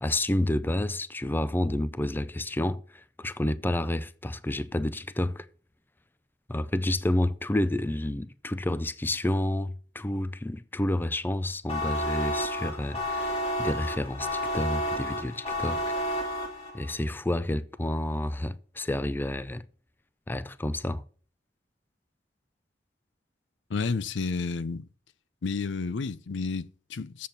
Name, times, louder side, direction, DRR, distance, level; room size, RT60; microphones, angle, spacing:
voice 1, 0.0-5.5 6.5-15.8 16.7-19.7 20.3-21.0, left 1 dB, 10° left, 0.4 m, -29 dB
sound 1, 11.7-16.9, equal, 35° left, 2.3 m, -31 dB
voice 2, 23.7-24.8 25.4-27.3, left 4 dB, 75° left, 0.5 m, -31 dB
7.6 x 6.7 x 6.8 m
head